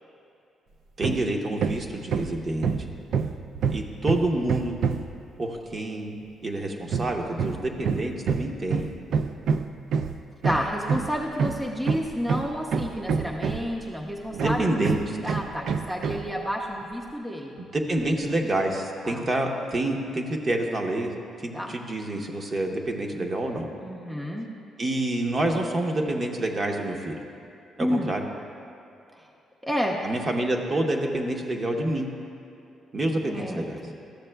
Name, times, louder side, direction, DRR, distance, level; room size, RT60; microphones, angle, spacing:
voice 1, 1.0-2.7 3.7-4.7 5.4-6.1 6.4-8.9 14.3-15.2 17.6-21.1 21.4-23.7 24.8-27.2 27.8-28.2 30.0-32.1 32.9-33.8, right 1 dB, 35° right, 1 dB, 0.9 m, -27 dB
Hammer, 1.0-1.3 1.6-5.2 6.9-13.8 14.4-16.3, right 5 dB, 70° right, 0.3 m, -27 dB
voice 2, 10.4-14.7 15.2-17.6 19.0-19.3 21.5-21.7 23.8-24.5 27.8-28.1 29.2-29.3 29.6-30.0 33.3-33.9, equal, 10° right, -1 dB, 0.6 m, -30 dB
13.5 x 6.7 x 2.3 m, 2.6 s
cardioid pair, 90°, 0 cm